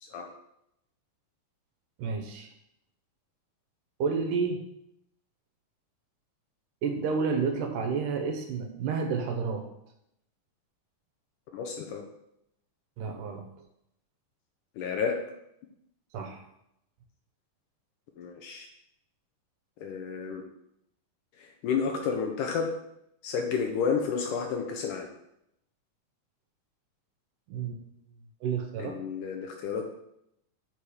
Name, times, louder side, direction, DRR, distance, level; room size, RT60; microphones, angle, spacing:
voice 1, 2.0-2.5 4.0-4.6 6.8-9.7 13.0-13.5 16.1-16.5 27.5-27.8 28.4-29.0, right 5 dB, 75° right, 5 dB, 2.4 m, -30 dB
voice 2, 11.5-12.1 14.8-15.2 18.2-18.7 19.8-20.4 21.4-22.7 23.2-25.1 28.8-29.9, left 6 dB, 80° left, 2 dB, 2.2 m, -31 dB
7.7 x 4.4 x 4.9 m, 0.79 s
omnidirectional pair, 3.9 m